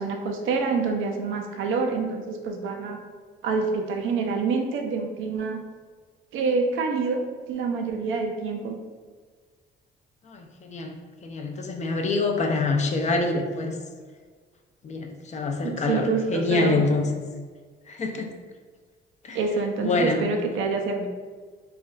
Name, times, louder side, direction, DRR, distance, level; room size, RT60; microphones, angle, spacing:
voice 1, 0.0-3.0 3.4-5.6 6.3-7.2 7.5-8.8 15.6-16.8 19.3-21.1, right 4 dB, 80° right, 3 dB, 0.4 m, -27 dB
voice 2, 10.3-13.8 14.8-17.1 17.9-18.3 19.3-19.4 19.8-20.3, left 3 dB, 35° left, 3 dB, 0.4 m, -26 dB
3.2 x 2.3 x 2.2 m, 1.5 s
cardioid pair, 90°, 20 cm